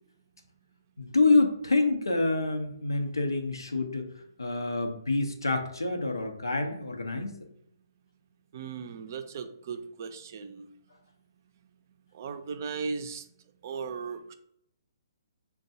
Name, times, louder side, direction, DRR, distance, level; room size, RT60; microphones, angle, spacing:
voice 1, 1.0-4.1 4.4-7.3, left 3 dB, 85° left, 4 dB, 0.8 m, -27 dB
voice 2, 8.5-10.7 12.1-13.2 13.6-14.3, right 5 dB, 45° right, 7 dB, 0.5 m, -37 dB
6.7 x 2.3 x 2.6 m, 0.73 s
figure-of-eight pair, 135°, 2 cm